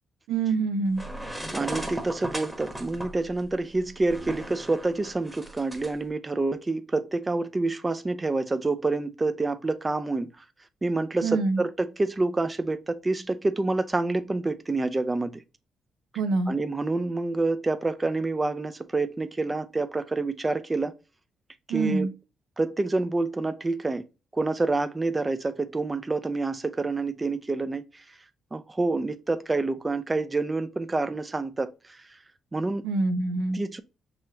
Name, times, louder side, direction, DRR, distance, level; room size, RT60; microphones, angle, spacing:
voice 1, 0.3-1.0 11.2-11.6 16.2-16.5 21.7-22.1 32.8-33.6, right 3 dB, 90° right, 0.9 m, -25 dB
sound 1, 0.9-5.9, right 1 dB, ahead, 1.1 m, -37 dB
voice 2, 1.5-10.4 10.8-15.4 16.5-20.9 21.7-22.1 22.6-24.0 24.3-28.2 28.5-32.2 32.5-32.8 33.5-33.8, right 3 dB, 20° right, 0.5 m, -28 dB
5.4 x 3.1 x 2.8 m
cardioid pair, 90°, 0 cm